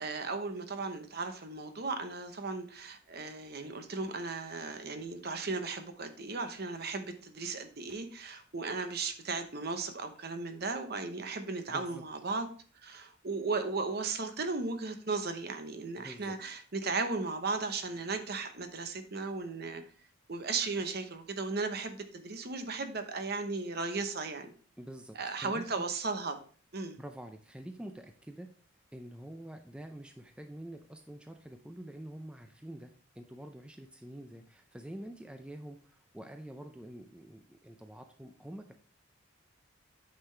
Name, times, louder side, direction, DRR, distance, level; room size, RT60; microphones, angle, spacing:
voice 1, 0.0-12.5 12.8-19.8 20.3-24.5 25.1-26.4 26.7-27.0, right 3 dB, 50° right, 8 dB, 0.9 m, -36 dB
voice 2, 11.7-12.0 16.0-16.4 24.8-25.8 27.0-28.5 28.9-38.7, right 1 dB, 5° right, 6 dB, 0.4 m, -47 dB
8.8 x 5.6 x 3.3 m, 0.43 s
head